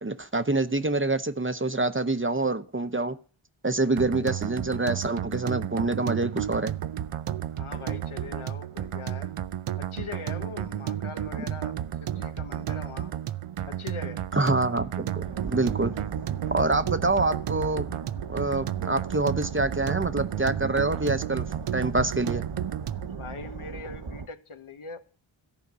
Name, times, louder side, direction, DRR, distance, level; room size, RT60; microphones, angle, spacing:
voice 1, 0.0-3.2 3.6-6.7 14.3-15.9 16.5-17.9 18.3-21.5 21.7-22.4, right 2 dB, 25° right, 0.8 m, -26 dB
sound 1, 4.0-23.2, right 11 dB, 80° right, 0.6 m, -32 dB
voice 2, 7.6-9.4 9.8-11.7 12.0-13.1 13.7-14.3 23.2-25.2, left 5 dB, 75° left, 1.2 m, -41 dB
sound 2, 15.2-24.3, right 5 dB, 55° right, 1.0 m, -38 dB
14.0 x 5.1 x 8.1 m
wide cardioid pair, 45°, 50 cm